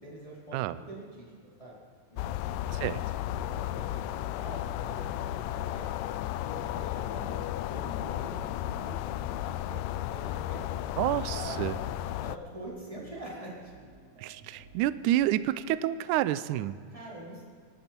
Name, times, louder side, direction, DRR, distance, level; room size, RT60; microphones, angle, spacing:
voice 1, 0.0-1.3 1.6-1.8 2.1-2.6 2.9-3.0 3.5-5.9 6.4-9.8 10.1-11.8 12.2-13.7 16.9-17.4, right 1 dB, 10° left, -6 dB, 3.8 m, -45 dB
sound 1, 2.2-12.4, left 13 dB, 85° left, 1.8 m, -34 dB
sound 2, 3.0-15.8, right 2 dB, 55° right, 3.6 m, -56 dB
voice 2, 11.0-11.7 14.2-16.8, right 13 dB, 85° right, 15 dB, 1.8 m, -29 dB
26.5 x 12.0 x 4.4 m, 2.1 s
omnidirectional pair, 4.2 m